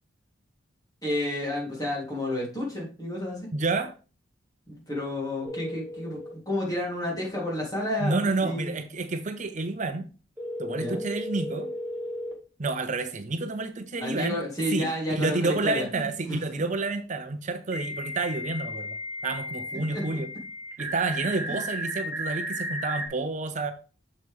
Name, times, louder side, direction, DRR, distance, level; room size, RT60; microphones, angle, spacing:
voice 1, 1.0-3.4 4.7-6.2 6.4-8.8 10.7-11.0 14.0-16.4 19.9-20.0, left 1 dB, 20° left, -4 dB, 3.3 m, -31 dB
voice 2, 3.5-3.9 8.0-10.1 10.6-11.7 12.6-14.4 14.7-19.0 19.2-20.3 20.8-23.7, right 3 dB, 40° right, 9 dB, 0.6 m, -29 dB
sound 1, 5.4-6.3 10.4-12.3 15.0-15.1 17.7-23.1, equal, 10° right, 2.0 m, -34 dB
6.9 x 6.3 x 3.6 m, 0.34 s
head